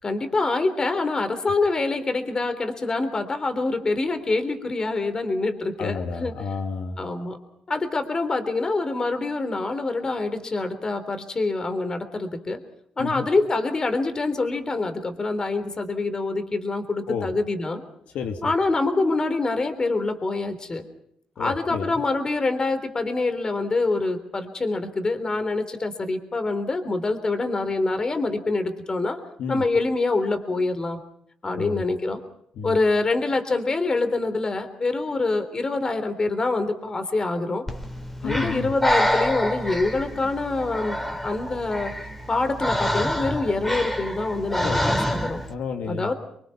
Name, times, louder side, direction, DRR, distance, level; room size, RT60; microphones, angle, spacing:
voice 1, 0.0-6.3 7.0-7.4 7.7-12.6 13.0-17.8 18.4-20.9 21.4-29.2 29.5-31.0 31.4-32.2 32.6-37.6 38.2-41.9 42.3-45.4 45.9-46.1, left 3 dB, 30° left, 9 dB, 3.5 m, -25 dB
voice 2, 5.8-7.0 13.0-13.3 17.1-17.3 18.1-18.5 21.4-22.0 29.4-29.6 31.6-31.8 32.5-32.8 38.2-38.7 44.6-44.8 45.5-46.1, left 5 dB, 80° left, 4 dB, 2.5 m, -31 dB
Breathing, 37.7-45.5, equal, 10° left, 3.5 m, -27 dB
26.0 x 23.0 x 5.9 m, 0.72 s
cardioid pair, 90°, 2 cm